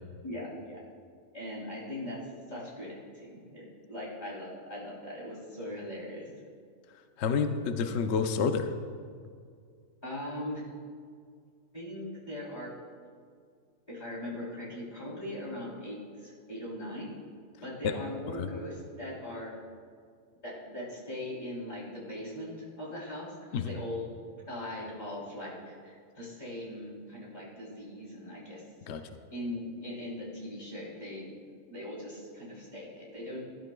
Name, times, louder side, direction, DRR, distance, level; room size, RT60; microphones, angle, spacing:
voice 1, 0.2-0.8 1.3-2.2 2.5-6.3 10.0-10.6 11.7-12.7 13.9-17.1 17.6-19.5 20.4-24.0 24.5-28.6 29.3-33.4, left 1 dB, 30° left, -6 dB, 3.4 m, -40 dB
voice 2, 7.2-8.7 17.8-17.9 18.4-18.5 23.5-23.7 28.9-29.0, left 6 dB, 60° left, 7 dB, 0.8 m, -28 dB
18.0 x 13.0 x 2.3 m, 2.2 s
omnidirectional pair, 1.5 m